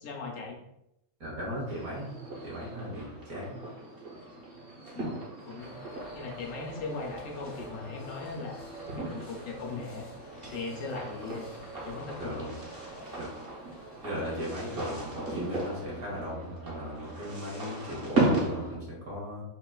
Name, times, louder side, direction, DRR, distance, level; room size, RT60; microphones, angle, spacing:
voice 1, 0.0-0.6 4.9-5.2 5.4-5.8 6.1-8.6 9.0-10.1 10.5-11.5 11.8-12.3, left 3 dB, 70° left, 1 dB, 1.0 m, -38 dB
voice 2, 1.2-3.6 12.2-12.6 13.2-13.3 14.0-19.4, equal, 85° right, -5 dB, 1.7 m, -37 dB
sound 1, 1.7-18.8, right 2 dB, 45° right, 1.1 m, -36 dB
sound 2, 5.6-15.8, right 1 dB, 35° left, 0.5 m, -48 dB
3.7 x 2.4 x 2.3 m, 0.82 s
omnidirectional pair, 1.5 m